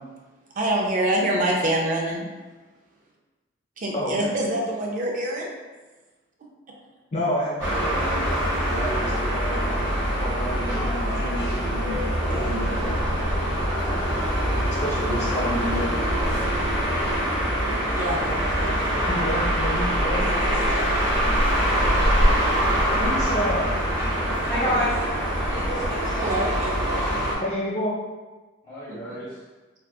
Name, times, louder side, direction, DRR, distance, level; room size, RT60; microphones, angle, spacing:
voice 1, 0.6-2.3 3.8-5.5 12.3-12.5 17.9-18.8 20.2-20.9 26.2-27.1 28.9-29.2, right 1 dB, 40° right, -1 dB, 0.4 m, -27 dB
voice 2, 3.9-4.3 7.1-12.0 12.4-12.7 14.8-15.9 19.1-20.3 23.0-23.7 27.4-27.9, equal, 35° left, -6 dB, 0.5 m, -30 dB
sound 1, 7.6-27.3, equal, 20° right, 0.8 m, -24 dB
voice 3, 24.5-24.9 25.5-26.5 28.7-29.3, equal, 20° left, -11 dB, 0.9 m, -29 dB
2.7 x 2.2 x 2.2 m, 1.2 s
head